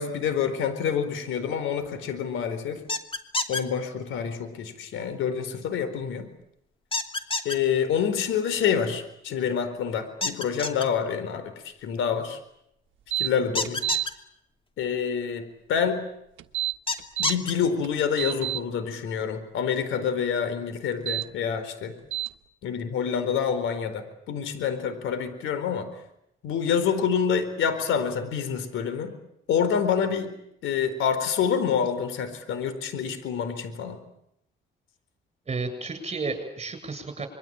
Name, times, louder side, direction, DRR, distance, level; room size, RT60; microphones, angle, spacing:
voice 1, 0.0-2.8 3.5-6.3 7.4-11.5 11.8-12.4 13.2-13.8 14.8-15.4 15.7-16.0 17.2-21.9 22.6-25.9 26.4-29.2 29.5-30.3 30.6-34.0, left 7 dB, 85° left, 11 dB, 4.4 m, -27 dB
sound 1, 2.9-3.6 6.9-7.6 10.2-10.8 13.5-14.1 16.9-17.5, left 3 dB, 25° left, 2.7 m, -27 dB
sound 2, 13.1-13.3 13.6-14.1 16.4-17.3 17.8-18.6 20.9-21.2 22.1-22.3, right 14 dB, 80° right, 1.3 m, -28 dB
voice 2, 35.5-37.3, right 3 dB, 30° right, 8 dB, 7.7 m, -32 dB
26.5 x 22.5 x 9.0 m, 0.79 s
cardioid pair, 90°, 20 cm